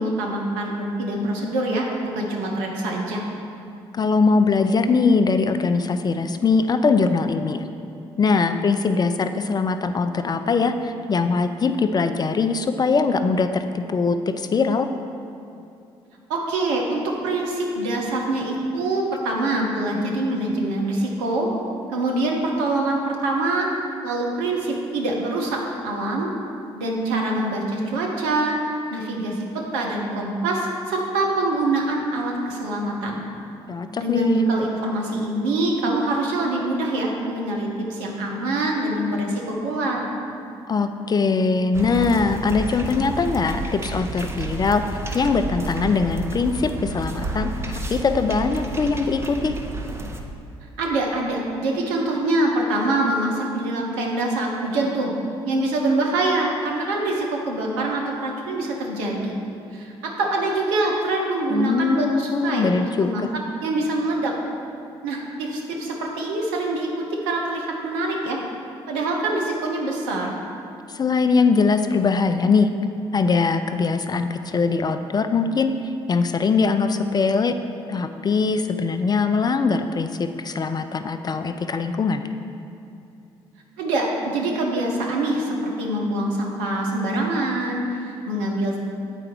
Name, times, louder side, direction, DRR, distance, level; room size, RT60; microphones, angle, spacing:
voice 1, 0.0-3.2 16.3-21.5 21.9-23.7 24.0-25.6 25.8-26.3 26.8-33.3 34.0-40.1 50.8-55.1 55.5-59.4 59.7-63.2 63.6-64.3 65.0-66.9 67.2-68.4 68.9-70.3 83.8-88.8, right 2 dB, 75° right, -1 dB, 1.0 m, -24 dB
voice 2, 3.9-7.7 8.2-14.9 33.7-34.4 40.7-44.8 45.1-49.5 61.5-63.3 70.9-72.7 73.1-75.7 76.1-77.5 77.9-82.2, left 4 dB, 30° left, 9 dB, 0.4 m, -21 dB
sound 1, 41.7-50.2, right 2 dB, 20° right, 0.8 m, -31 dB
7.9 x 4.8 x 4.5 m, 2.6 s
figure-of-eight pair, 45°, 13 cm